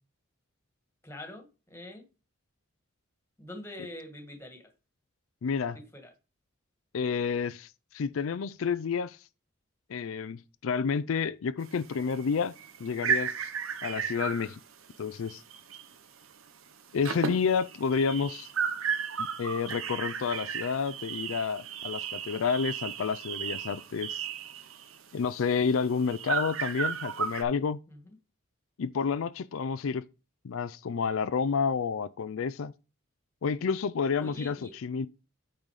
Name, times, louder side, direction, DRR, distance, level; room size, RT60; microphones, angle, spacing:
voice 1, 1.0-2.0 3.4-4.6 5.9-6.1 27.9-28.1 34.2-34.7, left 1 dB, 10° left, 1.8 m, -44 dB
voice 2, 5.4-5.8 6.9-7.7 7.9-9.2 9.9-12.5 12.8-13.5 13.8-14.6 15.0-15.4 16.9-18.5 19.2-24.2 25.1-27.8 28.8-30.0 30.4-32.7 33.4-35.1, left 5 dB, 80° left, 0.4 m, -30 dB
sound 1, 11.6-16.0 16.2-16.5 16.8-27.4, right 7 dB, 85° right, 0.9 m, -34 dB
8.8 x 4.0 x 4.8 m
head